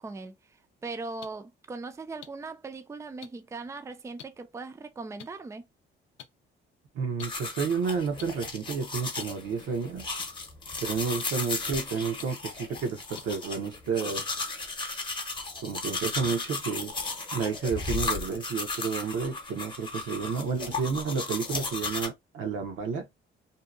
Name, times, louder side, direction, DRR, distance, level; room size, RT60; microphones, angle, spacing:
voice 1, 0.0-5.7, right 3 dB, 15° right, 0.4 m, -40 dB
sound 1, 1.2-1.3 2.2-2.3 3.2-3.3 4.2-4.3 5.2-5.3 6.2-6.3 7.2-7.3 8.2-8.3 9.2-9.3 10.2-10.3 11.2-11.3 12.2-12.3 13.2-13.3 14.2-14.3, left 10 dB, 75° left, 0.5 m, -44 dB
voice 2, 6.9-10.1 10.8-14.3 15.6-16.9 17.3-23.1, right 5 dB, 80° right, 0.8 m, -31 dB
sound 2, 7.2-22.1, left 3 dB, 25° left, 0.8 m, -35 dB
2.7 x 2.2 x 2.4 m
cardioid pair, 90°, 20 cm